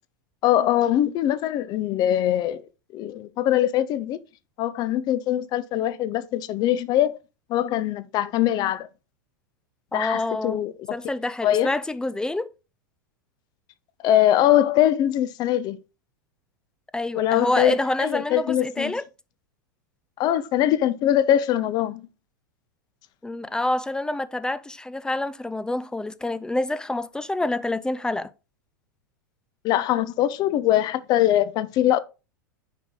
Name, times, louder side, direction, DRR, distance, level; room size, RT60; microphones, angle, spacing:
voice 1, 0.4-2.6 2.9-4.2 4.6-7.2 7.5-8.9 9.9-11.0 11.4-11.7 14.0-15.8 17.1-18.9 20.2-22.0 29.6-32.0, left 12 dB, 40° left, 0.7 m, -22 dB
voice 2, 9.9-10.6 10.9-12.5 16.9-19.1 23.2-28.3, left 2 dB, 5° left, 0.5 m, -27 dB
9.7 x 4.7 x 3.7 m
figure-of-eight pair, 90°, 11 cm